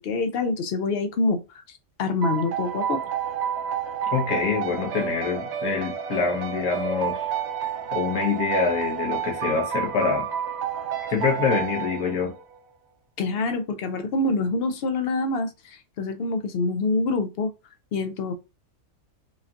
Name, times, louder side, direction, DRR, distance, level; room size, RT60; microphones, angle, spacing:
voice 1, 0.0-1.6 2.0-3.0 13.2-17.5 17.9-18.3, left 3 dB, 60° left, 0.6 m, -26 dB
sound 1, 2.2-12.6, right 8 dB, 60° right, 0.8 m, -30 dB
voice 2, 4.1-7.3 7.9-10.3 11.1-12.3, left 5 dB, 80° left, 1.5 m, -25 dB
4.9 x 2.7 x 2.4 m
omnidirectional pair, 1.5 m